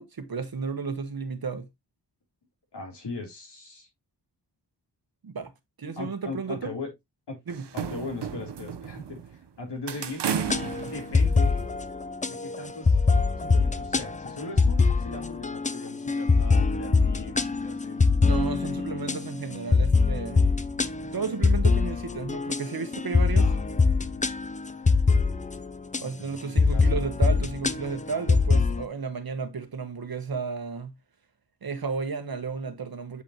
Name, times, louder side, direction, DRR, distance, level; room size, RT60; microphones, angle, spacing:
voice 1, 0.0-1.7 5.2-5.5 5.8-6.7 7.5-7.6 18.2-20.5 21.1-23.5 26.0-30.9 31.6-33.2, right 5 dB, 60° right, 1.3 m, -33 dB
voice 2, 2.7-3.9 6.0-6.9 7.3-7.4 7.7-10.2 10.8-11.6 12.3-13.0 13.4-19.3 23.4-23.6 26.0-27.0, left 3 dB, 80° left, 3.3 m, -39 dB
sound 1, 7.5-9.4 9.9-11.8, right 7 dB, 80° right, 0.9 m, -33 dB
sound 2, 10.4-26.0 26.6-28.8, left 4 dB, 20° left, 0.4 m, -24 dB
8.2 x 5.1 x 3.0 m
wide cardioid pair, 105°, 41 cm